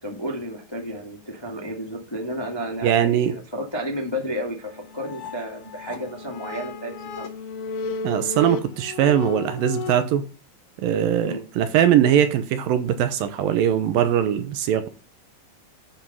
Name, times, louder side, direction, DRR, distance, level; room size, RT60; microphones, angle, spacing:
voice 1, 0.0-7.3 11.2-11.4, equal, 10° left, 1.2 m, -32 dB
voice 2, 2.8-3.3 8.0-10.2 10.8-14.9, right 10 dB, 75° right, 2.6 m, -21 dB
sound 1, 4.6-10.0, left 4 dB, 70° left, 2.8 m, -34 dB
12.0 x 5.2 x 5.5 m
omnidirectional pair, 4.3 m